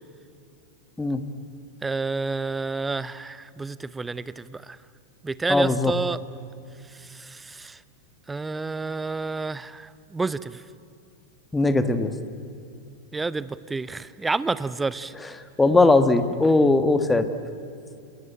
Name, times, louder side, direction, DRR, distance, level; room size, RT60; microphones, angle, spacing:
voice 1, 1.8-4.8 5.2-6.2 7.0-7.8 8.3-10.6 13.1-15.1, right 3 dB, 10° right, 17 dB, 0.7 m, -29 dB
voice 2, 5.5-5.9 11.5-12.1 15.6-17.3, left 2 dB, 10° left, 10 dB, 1.5 m, -19 dB
27.5 x 20.0 x 8.9 m, 2.5 s
figure-of-eight pair, 90°, 0 cm